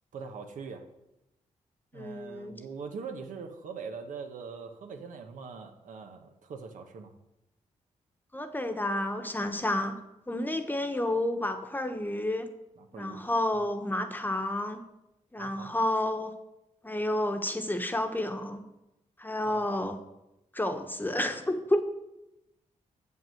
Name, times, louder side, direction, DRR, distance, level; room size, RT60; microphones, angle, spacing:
voice 1, 0.1-0.8 1.9-7.1 12.8-13.2 15.4-15.7 19.4-19.7, right 5 dB, 80° right, 5 dB, 1.2 m, -42 dB
voice 2, 1.9-2.5 8.3-10.0 10.3-12.5 12.9-14.8 15.3-16.3 16.8-18.6 19.2-20.0 20.5-21.8, left 1 dB, 15° left, 7 dB, 1.1 m, -30 dB
7.4 x 5.9 x 7.7 m, 0.90 s
cardioid pair, 70°, 13 cm